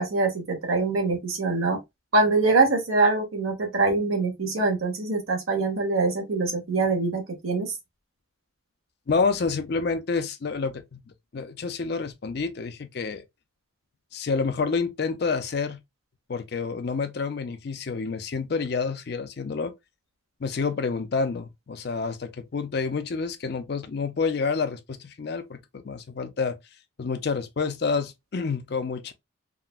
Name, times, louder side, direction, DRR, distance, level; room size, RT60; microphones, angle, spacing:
voice 1, 0.0-1.8 2.1-7.7, right 3 dB, 85° right, 1.1 m, -24 dB
voice 2, 9.1-11.0 11.3-13.2 14.1-15.8 16.3-19.7 20.4-26.6 27.0-29.1, left 4 dB, 50° left, 0.4 m, -28 dB
3.6 x 2.2 x 2.3 m
head